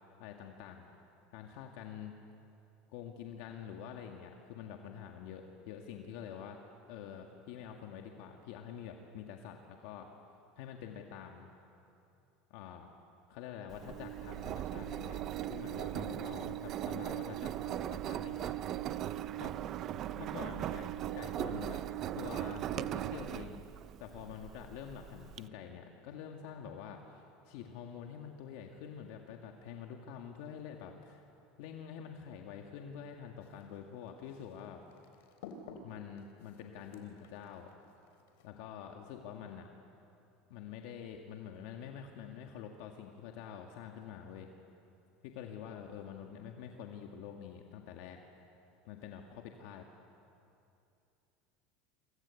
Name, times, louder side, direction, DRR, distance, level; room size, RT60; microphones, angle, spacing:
voice 1, 0.2-0.9 1.3-2.2 2.9-6.6 6.9-10.1 10.6-11.5 12.5-12.9 13.3-15.2 15.5-18.5 19.4-19.5 20.1-21.8 22.1-23.7 24.0-31.2 31.6-34.8 35.8-37.7 38.4-39.7 40.5-44.5 45.2-48.2 48.8-49.9, left 8 dB, 65° left, 2 dB, 2.1 m, -47 dB
Engine, 13.7-25.4, right 12 dB, 35° right, 0.6 m, -39 dB
sound 1, 33.4-38.5, left 4 dB, 85° left, 3.7 m, -55 dB
28.0 x 25.0 x 8.5 m, 2.7 s
supercardioid pair, 150°, 0 cm